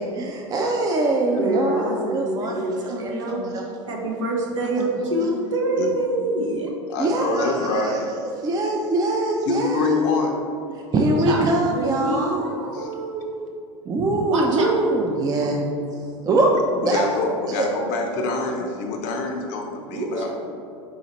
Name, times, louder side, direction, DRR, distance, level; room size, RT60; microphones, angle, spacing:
voice 1, 0.1-2.6 3.0-3.6 4.8-4.9 7.0-10.0 10.9-12.4 13.9-15.7 16.2-17.0 17.5-17.7, right 2 dB, 25° right, 1 dB, 0.4 m, -23 dB
voice 2, 1.4-3.5 3.8-6.7 10.9-11.4 11.7-13.4 14.3-14.7 19.7-20.3, right 1 dB, 80° right, -1 dB, 0.8 m, -26 dB
voice 3, 6.9-8.0 9.5-10.3 12.7-12.9 15.4-15.5 16.8-20.3, left 3 dB, 55° left, 2 dB, 0.5 m, -25 dB
4.1 x 3.9 x 3.0 m, 2.5 s
hypercardioid pair, 85°, 16 cm